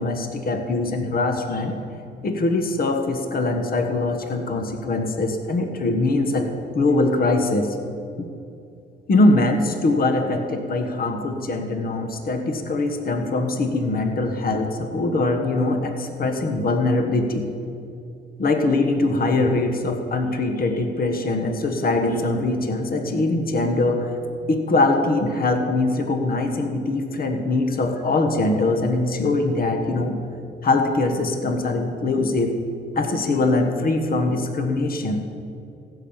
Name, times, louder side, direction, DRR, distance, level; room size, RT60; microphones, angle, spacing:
voice 1, 0.0-1.8 2.2-6.5 6.7-7.8 9.1-17.5 18.4-24.1 24.5-30.2 30.6-32.5 32.9-35.2, left 2 dB, 50° left, 5 dB, 1.4 m, -22 dB
15.5 x 6.1 x 7.2 m, 2.6 s
cardioid pair, 90°, 20 cm